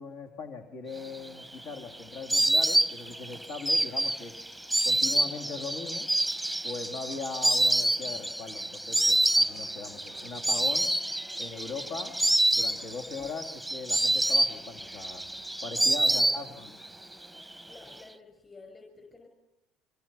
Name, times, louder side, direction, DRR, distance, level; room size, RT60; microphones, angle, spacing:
voice 1, 0.0-4.3 4.8-6.1 6.6-10.9 11.4-12.2 12.5-15.2 15.6-17.0, left 4 dB, 75° left, 3 dB, 2.4 m, -40 dB
Insect, 1.1-16.9 17.1-17.9, right 1 dB, ahead, 0.9 m, -27 dB
voice 2, 15.8-16.4 17.6-19.3, left 3 dB, 25° left, 2 dB, 5.9 m, -51 dB
25.0 x 24.0 x 5.9 m, 0.98 s
supercardioid pair, 85°, 0 cm